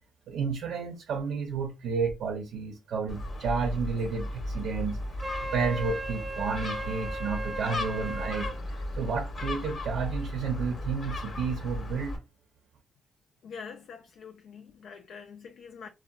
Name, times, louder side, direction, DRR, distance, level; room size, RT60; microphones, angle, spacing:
voice 1, 0.3-5.0 5.5-12.2, right 5 dB, 70° right, 0.5 m, -31 dB
Gull seagull, 3.1-12.2, left 1 dB, 45° left, 0.8 m, -36 dB
Wind instrument woodwind instrument, 5.2-8.6, right 1 dB, 20° right, 0.4 m, -36 dB
voice 2, 13.4-15.9, left 6 dB, 65° left, 0.3 m, -45 dB
2.6 x 2.1 x 2.2 m
cardioid pair, 90°, 0 cm